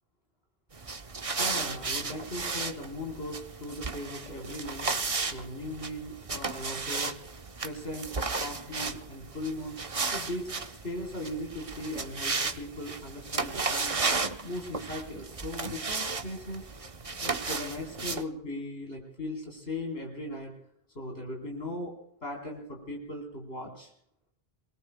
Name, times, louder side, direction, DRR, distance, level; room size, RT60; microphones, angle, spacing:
sound 1, 0.7-18.2, right 4 dB, 35° right, 0.9 m, -34 dB
voice 1, 1.4-4.9 5.3-7.2 7.6-8.1 8.4-9.8 10.1-10.5 10.8-13.9 14.4-16.7 17.2-20.5 20.9-21.9 22.2-23.9, left 1 dB, 80° left, 0 dB, 4.4 m, -38 dB
26.5 x 21.0 x 2.3 m, 0.71 s
omnidirectional pair, 1.0 m